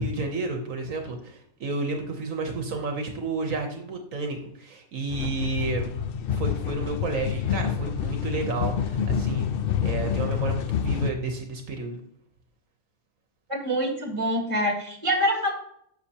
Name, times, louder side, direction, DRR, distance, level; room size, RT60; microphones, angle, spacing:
voice 1, 0.0-5.9 6.3-9.5 9.8-12.0, right 3 dB, 70° right, 4 dB, 1.4 m, -31 dB
sound 1, 5.1-11.1, left 8 dB, 65° left, 0.5 m, -27 dB
voice 2, 13.5-15.5, equal, 20° right, 2 dB, 1.8 m, -25 dB
9.7 x 6.8 x 2.9 m, 0.70 s
omnidirectional pair, 1.5 m